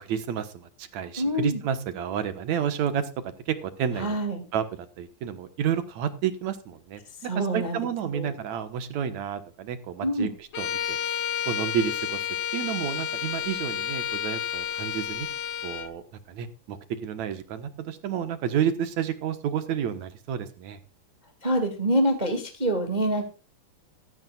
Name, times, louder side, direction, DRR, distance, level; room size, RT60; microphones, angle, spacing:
voice 1, 0.0-3.1 3.5-4.2 4.5-7.0 7.3-11.0 11.4-12.2 12.5-15.3 15.6-20.8, right 8 dB, 65° right, 10 dB, 2.4 m, -30 dB
voice 2, 1.2-1.6 4.0-4.4 7.3-7.8 8.1-8.3 10.0-10.3 21.4-23.2, right 1 dB, 15° right, 4 dB, 1.8 m, -26 dB
Bowed string instrument, 10.5-15.9, left 10 dB, 65° left, 1.1 m, -31 dB
16.0 x 14.0 x 2.4 m, 0.31 s
omnidirectional pair, 3.7 m